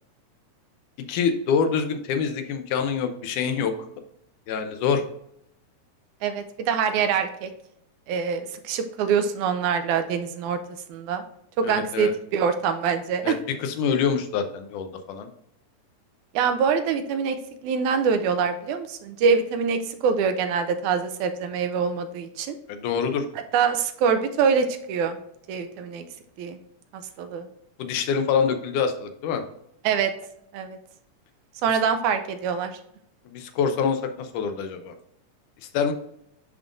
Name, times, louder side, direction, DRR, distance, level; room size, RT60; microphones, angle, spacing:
voice 1, 1.1-3.7 4.5-5.0 11.6-12.1 13.2-13.3 13.6-15.3 22.7-23.3 27.8-29.4 33.3-34.9 35.7-35.9, left 6 dB, 90° left, 7 dB, 2.3 m, -25 dB
voice 2, 6.2-7.5 8.1-10.6 10.9-11.2 11.6-13.4 16.3-17.4 17.6-22.6 23.5-25.2 25.5-26.0 26.4-26.6 26.9-27.5 29.8-30.1 30.5-30.8 31.6-32.7, right 6 dB, 85° right, 8 dB, 2.0 m, -24 dB
10.5 x 3.7 x 2.5 m, 0.74 s
omnidirectional pair, 3.5 m